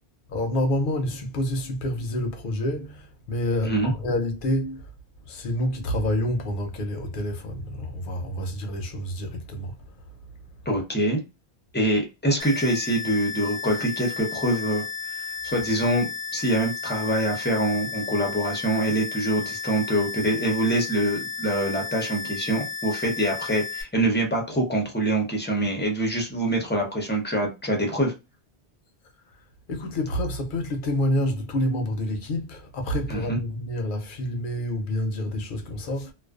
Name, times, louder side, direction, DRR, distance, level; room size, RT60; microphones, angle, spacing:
voice 1, 0.3-4.9 5.3-9.7 29.7-36.1, left 1 dB, 60° left, 0.7 m, -28 dB
voice 2, 10.7-11.2 11.7-14.8 15.4-28.1 33.1-33.4, right 1 dB, 15° left, 0.5 m, -25 dB
sound 1, 12.4-23.8, left 6 dB, 35° right, 0.5 m, -34 dB
2.4 x 2.2 x 2.3 m
omnidirectional pair, 1.1 m